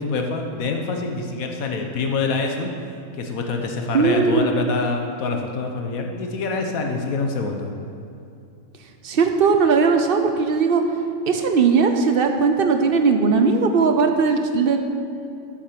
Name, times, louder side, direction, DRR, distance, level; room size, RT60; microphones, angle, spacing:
voice 1, 0.0-2.7 3.1-7.7, left 3 dB, 80° left, 3 dB, 1.5 m, -25 dB
voice 2, 3.9-4.5 9.0-10.8 11.3-14.8, right 5 dB, 50° right, 6 dB, 0.9 m, -18 dB
8.7 x 7.4 x 6.8 m, 2.6 s
omnidirectional pair, 1.4 m